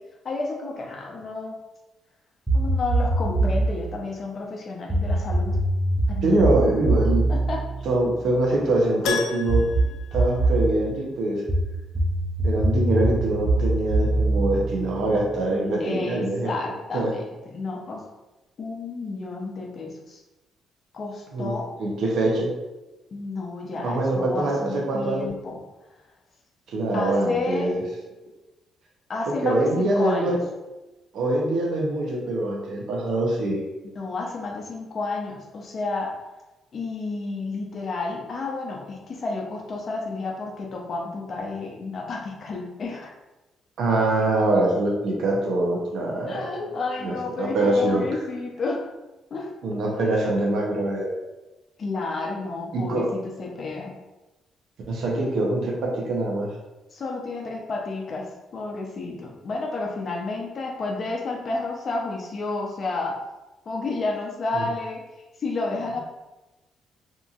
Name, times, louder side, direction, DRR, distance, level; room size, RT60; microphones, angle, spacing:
voice 1, 0.2-1.5 2.5-5.6 6.1-6.3 7.3-7.6 15.5-18.0 18.6-20.2 20.9-21.6 23.1-25.6 26.9-27.7 29.1-30.4 34.0-36.1 36.7-43.1 46.3-48.8 49.3-49.5 51.8-53.9 56.9-58.3 58.5-63.2 63.7-65.0 65.4-66.0, left 3 dB, 50° left, -1 dB, 0.6 m, -31 dB
sound 1, 2.5-3.8 4.9-8.6 9.5-10.7 11.5-15.4, right 2 dB, ahead, 0.6 m, -23 dB
voice 2, 6.2-7.2 7.8-9.6 10.1-11.4 12.4-16.5 16.9-17.1 21.3-22.5 23.7-25.3 26.7-27.8 29.3-30.4 31.1-33.6 43.8-46.5 47.0-48.0 49.6-51.2 52.7-53.1 54.9-56.5 64.5-64.7 65.9-66.0, right 2 dB, 70° right, -1 dB, 0.7 m, -24 dB
Keyboard (musical), 9.0-11.1 11.3-11.4 14.2-14.3 14.5-14.6, left 6 dB, 85° left, 0.3 m, -32 dB
2.8 x 2.6 x 2.4 m, 1.1 s
cardioid pair, 85°, 0 cm